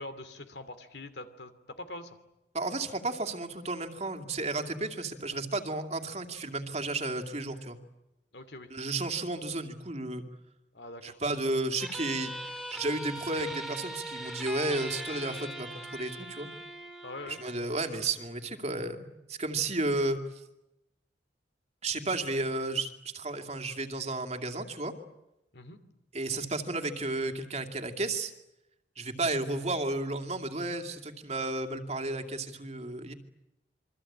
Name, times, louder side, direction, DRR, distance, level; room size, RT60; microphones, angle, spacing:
voice 1, 0.0-2.2 8.3-8.7 10.7-11.2 17.0-17.4 25.5-25.8, left 2 dB, 65° left, 10 dB, 2.8 m, -43 dB
voice 2, 2.5-7.8 8.7-10.2 11.0-12.3 12.7-16.5 17.3-20.2 21.8-24.9 26.1-28.3 29.0-33.1, right 2 dB, 35° right, 5 dB, 2.5 m, -33 dB
sound 1, 11.8-18.8, right 1 dB, ahead, 3.3 m, -41 dB
28.0 x 24.0 x 8.8 m, 0.92 s
head